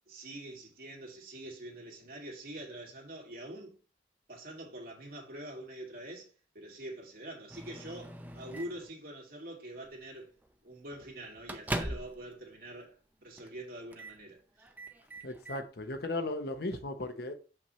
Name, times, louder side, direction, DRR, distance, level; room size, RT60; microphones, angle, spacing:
voice 1, 0.1-3.8 4.3-10.3 10.6-14.7, right 1 dB, 55° right, 2.4 m, -45 dB
Microwave oven, 7.5-8.9 9.8-10.1 10.4-10.5 10.9-12.3 12.6-12.7 13.4-13.6 13.9-14.2 14.6-15.6, right 1 dB, 10° right, 0.6 m, -41 dB
voice 2, 15.2-17.3, left 2 dB, 60° left, 0.9 m, -36 dB
7.1 x 5.8 x 3.1 m
head